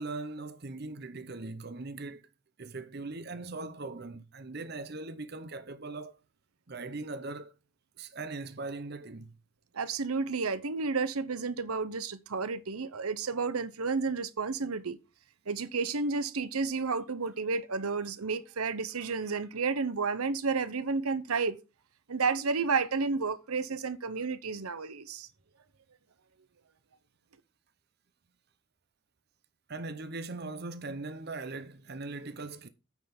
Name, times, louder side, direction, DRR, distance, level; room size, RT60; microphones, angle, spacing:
voice 1, 0.0-2.3 2.6-6.2 6.7-7.5 8.0-9.3 29.7-32.7, right 3 dB, 45° right, 0.8 m, -40 dB
voice 2, 9.7-15.0 15.5-21.6 22.1-25.3, right 4 dB, 85° right, 0.9 m, -31 dB
9.2 x 5.4 x 5.9 m
head